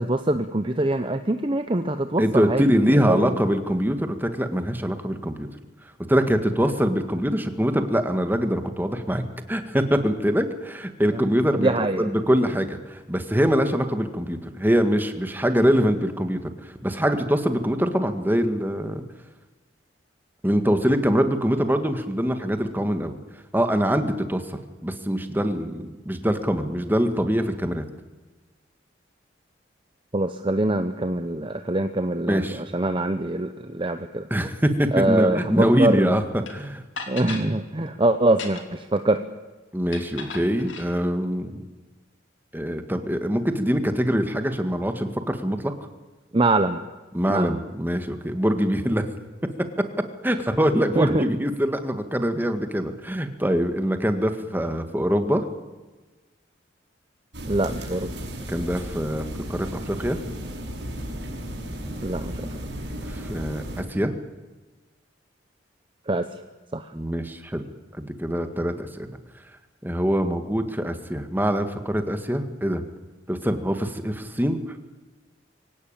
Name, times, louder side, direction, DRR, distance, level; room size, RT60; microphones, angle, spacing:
voice 1, 0.0-3.4 11.1-11.2 11.5-12.1 30.1-34.3 34.9-36.1 37.1-39.2 46.3-46.8 47.3-47.6 51.0-51.2 57.5-58.1 62.0-62.4 66.1-66.3 66.7-66.9, right 2 dB, 25° right, 8 dB, 0.9 m, -24 dB
voice 2, 2.2-5.5 6.1-19.0 20.4-23.2 23.5-27.9 32.3-32.6 34.3-36.2 36.5-36.8 39.7-41.7 42.5-45.7 47.1-49.1 49.8-49.9 50.2-55.4 58.5-60.2 63.1-64.1 66.9-67.6 67.9-69.1 69.8-72.8 73.3-74.6, equal, 10° right, 8 dB, 1.8 m, -24 dB
sound 1, 36.5-36.6 37.0-37.5 38.3-38.8 39.9-40.9, left 5 dB, 85° left, 3.2 m, -36 dB
sound 2, 57.3-63.8, equal, 65° right, 6.3 m, -34 dB
24.0 x 17.0 x 8.9 m, 1.2 s
head